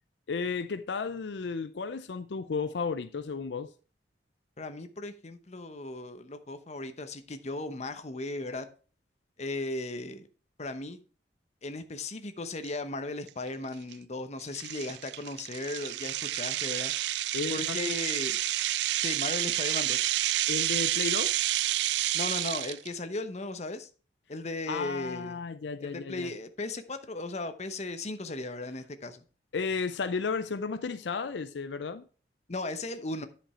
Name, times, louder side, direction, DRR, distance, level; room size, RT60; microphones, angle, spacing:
voice 1, 0.3-3.7 17.3-17.9 20.5-21.4 24.7-26.3 29.5-32.0, left 5 dB, 75° left, 0.5 m, -33 dB
voice 2, 4.6-8.7 9.4-10.3 10.6-11.0 11.6-16.9 17.5-18.4 19.0-20.1 22.1-23.9 24.3-25.4 25.8-29.2 32.5-33.3, left 2 dB, 40° left, 0.9 m, -36 dB
sound 1, 12.6-12.7 13.3-13.5 13.9-14.0 14.5-22.9, right 15 dB, 70° right, 0.3 m, -29 dB
10.0 x 5.2 x 4.4 m
head